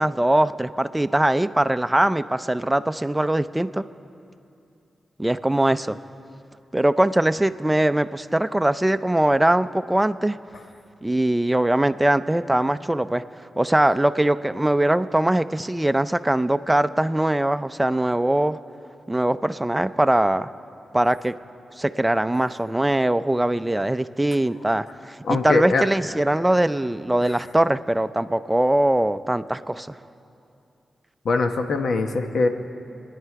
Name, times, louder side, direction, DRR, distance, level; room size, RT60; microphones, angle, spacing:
voice 1, 0.0-3.8 5.2-6.0 6.7-10.4 11.0-13.2 13.6-18.6 19.1-20.5 20.9-21.3 21.8-30.0, right 1 dB, 15° right, 11 dB, 0.5 m, -21 dB
voice 2, 25.2-25.8 31.2-32.5, left 3 dB, 75° left, 6 dB, 1.0 m, -22 dB
28.5 x 10.0 x 4.7 m, 2.7 s
cardioid pair, 65°, 0 cm